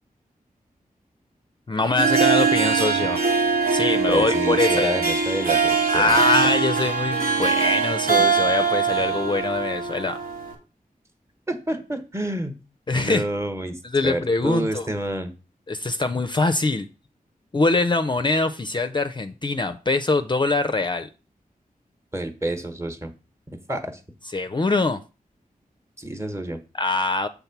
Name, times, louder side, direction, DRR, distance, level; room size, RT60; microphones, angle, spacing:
voice 1, 1.7-3.2 3.7-4.9 5.9-10.2 12.9-13.3 13.8-14.9 15.7-16.9 17.5-21.1 24.3-25.0 26.7-27.3, left 3 dB, 30° left, 0.4 m, -23 dB
Harp, 1.8-10.5, right 5 dB, 80° right, 1.6 m, -22 dB
voice 2, 4.1-6.2 11.5-12.6 12.9-15.3 22.1-23.1 23.5-23.9 26.0-26.6, right 1 dB, 20° right, 1.1 m, -28 dB
7.1 x 3.6 x 5.8 m
wide cardioid pair, 85°, 15 cm